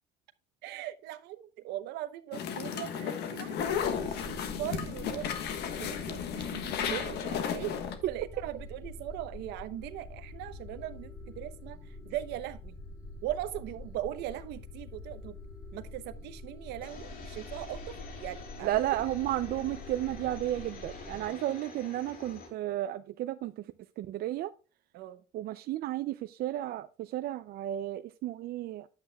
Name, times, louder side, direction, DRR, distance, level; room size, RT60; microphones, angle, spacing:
voice 1, 0.6-5.3 5.8-7.7 8.1-11.8 12.0-12.8 13.2-15.4 15.7-18.8 21.1-21.5 24.9-25.2, right 13 dB, 85° right, 0.9 m, -40 dB
sound 1, 2.3-8.0, left 8 dB, 75° left, 1.4 m, -34 dB
sound 2, 3.6-21.3, left 2 dB, 20° left, 5.4 m, -46 dB
sound 3, 16.8-22.5, left 4 dB, 55° left, 3.1 m, -47 dB
voice 2, 18.6-23.5 24.0-24.5 25.3-28.9, right 14 dB, 65° right, 0.5 m, -33 dB
10.5 x 8.2 x 2.3 m
cardioid pair, 110°, 17 cm